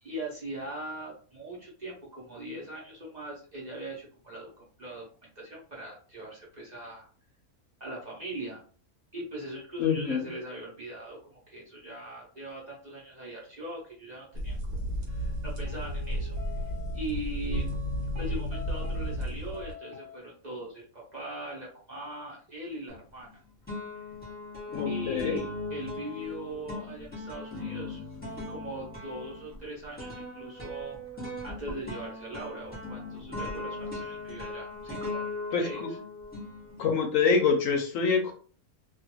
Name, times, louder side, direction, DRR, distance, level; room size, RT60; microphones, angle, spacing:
voice 1, 0.0-5.0 5.4-7.1 7.8-8.6 9.1-14.6 15.1-16.4 16.6-17.7 18.2-23.3 24.8-35.2 35.5-36.0, right 1 dB, 35° right, -4 dB, 0.9 m, -40 dB
voice 2, 9.8-10.2 24.7-25.4 35.5-35.9 36.8-38.3, left 5 dB, 70° left, 4 dB, 0.9 m, -26 dB
sound 1, 14.3-19.7, right 1 dB, 60° right, 1.2 m, -33 dB
sound 2, 15.1-17.1 17.5-19.3 19.5-20.2, left 7 dB, 80° right, 1.3 m, -41 dB
sound 3, 22.9-23.3 23.7-37.1, left 2 dB, 5° left, 1.2 m, -38 dB
2.5 x 2.5 x 3.0 m, 0.41 s
omnidirectional pair, 1.5 m